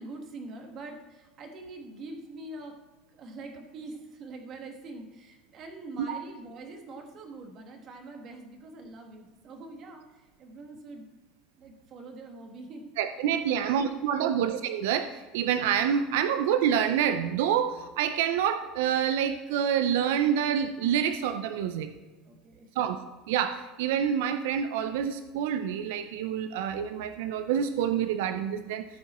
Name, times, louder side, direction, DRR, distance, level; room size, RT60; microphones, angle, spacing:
voice 1, 0.0-2.8 3.1-11.1 11.6-12.9 13.3-14.4 22.2-22.7, right 2 dB, 30° right, 4 dB, 1.4 m, -44 dB
voice 2, 13.0-21.9 22.8-23.0 23.3-28.9, right 9 dB, 80° right, 9 dB, 0.5 m, -27 dB
14.5 x 6.0 x 4.3 m, 1.2 s
cardioid pair, 170°, 0 cm